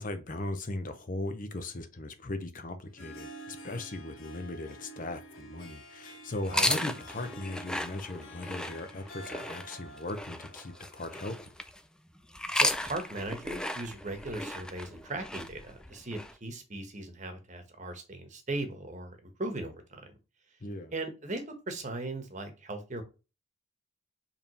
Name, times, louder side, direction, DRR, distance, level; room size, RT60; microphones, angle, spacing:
voice 1, 0.0-11.5 20.6-20.9, left 2 dB, 40° left, 0.7 m, -38 dB
Harp, 2.8-11.5, equal, 75° left, 1.2 m, -49 dB
sound 1, 6.4-11.8 12.3-16.3, left 1 dB, 5° left, 0.4 m, -34 dB
voice 2, 12.5-20.1 20.9-23.0, right 2 dB, 35° right, 1.2 m, -38 dB
4.8 x 3.6 x 5.4 m
head